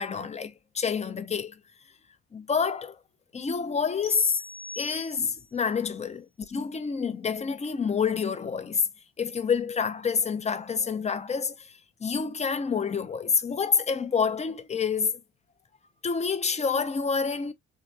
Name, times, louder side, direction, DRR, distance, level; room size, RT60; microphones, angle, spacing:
voice 1, 0.0-1.5 2.3-3.0 3.3-4.3 4.8-8.8 9.2-11.5 12.0-15.1 16.0-17.5, left 6 dB, 20° left, 0.5 m, -28 dB
sound 1, 4.0-5.6, left 2 dB, 60° left, 1.1 m, -43 dB
2.9 x 2.6 x 2.3 m
supercardioid pair, 75°, 32 cm